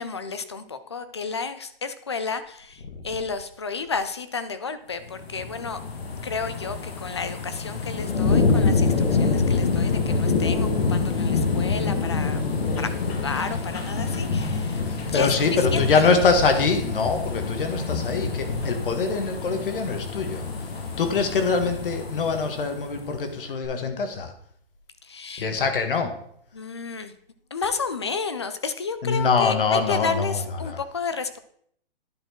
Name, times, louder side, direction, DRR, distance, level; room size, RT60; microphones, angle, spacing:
voice 1, 0.0-5.8 6.2-12.4 12.8-14.8 15.1-15.4 15.7-15.9 25.1-25.5 26.5-27.1 27.5-31.4, left 5 dB, 30° left, 12 dB, 0.4 m, -32 dB
sound 1, 5.1-23.2 23.6-23.7, left 4 dB, 85° left, 1.7 m, -26 dB
voice 2, 14.8-20.5 21.0-24.3 25.4-26.2 29.0-30.8, left 4 dB, 60° left, 6 dB, 1.6 m, -24 dB
10.0 x 4.4 x 4.3 m, 0.66 s
hypercardioid pair, 170°, 30 cm